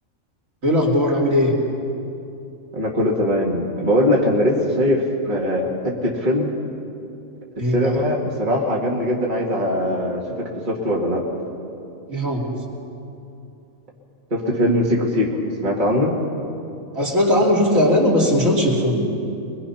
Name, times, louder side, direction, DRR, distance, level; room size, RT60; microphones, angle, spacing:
voice 1, 0.6-1.6 7.6-8.0 12.1-12.6 17.0-19.1, left 1 dB, 70° right, -3 dB, 3.6 m, -19 dB
voice 2, 2.7-6.5 7.7-11.2 14.3-15.3 15.6-16.2, left 1 dB, 35° right, -3 dB, 2.5 m, -21 dB
24.0 x 21.5 x 5.8 m, 2.7 s
omnidirectional pair, 1.4 m